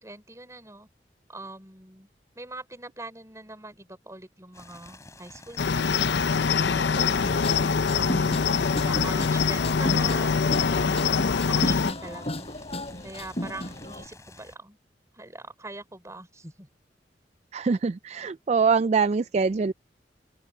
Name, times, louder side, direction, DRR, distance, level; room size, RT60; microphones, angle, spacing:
voice 1, 0.0-0.9 1.3-2.1 2.3-6.2 6.7-7.5 7.9-11.1 11.5-12.4 13.0-14.8 15.1-16.7, right 2 dB, 15° right, 4.5 m, -43 dB
sound 1, 4.5-14.6, left 2 dB, 20° left, 3.7 m, -50 dB
Cricket, 5.6-11.9, left 5 dB, 75° left, 0.6 m, -24 dB
sound 2, 7.2-14.1, left 1 dB, 35° left, 5.4 m, -34 dB
voice 2, 17.5-19.7, right 5 dB, 40° right, 0.3 m, -24 dB
open air
head